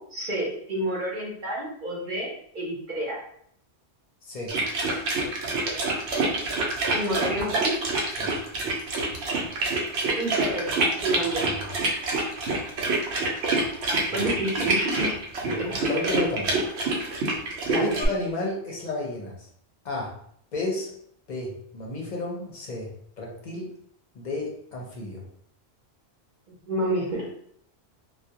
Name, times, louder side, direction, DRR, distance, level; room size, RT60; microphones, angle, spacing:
voice 1, 0.0-3.2 6.9-7.8 10.1-11.5 13.9-15.8 17.7-18.0 26.5-27.3, right 1 dB, 50° right, -3 dB, 0.8 m, -29 dB
sound 1, 4.5-18.1, right 2 dB, 80° right, 0.9 m, -27 dB
voice 2, 11.2-11.6 14.1-14.2 15.4-15.5 15.8-16.5 17.7-19.4 19.8-20.1 20.5-20.9 21.3-22.9 23.2-23.7 24.2-25.2, left 2 dB, 50° left, -1 dB, 0.6 m, -32 dB
2.3 x 2.1 x 2.7 m, 0.67 s
omnidirectional pair, 1.1 m